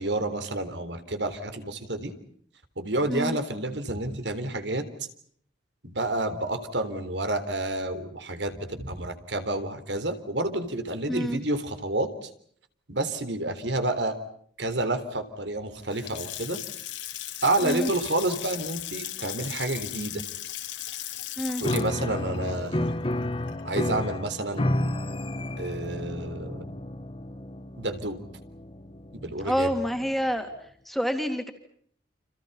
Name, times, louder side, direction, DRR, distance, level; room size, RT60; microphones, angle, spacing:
voice 1, 0.0-2.1 2.8-5.1 5.8-12.3 12.9-14.2 14.6-16.6 17.4-20.2 21.6-23.0 23.6-24.9 25.6-26.7 27.8-28.2 29.1-29.7, right 2 dB, 75° right, 10 dB, 3.7 m, -29 dB
voice 2, 11.1-11.4 17.6-17.9 21.4-21.6 29.4-30.5 30.9-31.5, equal, ahead, 6 dB, 2.7 m, -27 dB
Water tap faucet / Sink (filling or washing) / Splash splatter, 15.8-23.9, left 13 dB, 85° left, 3.3 m, -37 dB
Piano, 21.6-30.1, left 1 dB, 30° left, 1.4 m, -32 dB
30.0 x 28.0 x 5.6 m, 0.63 s
head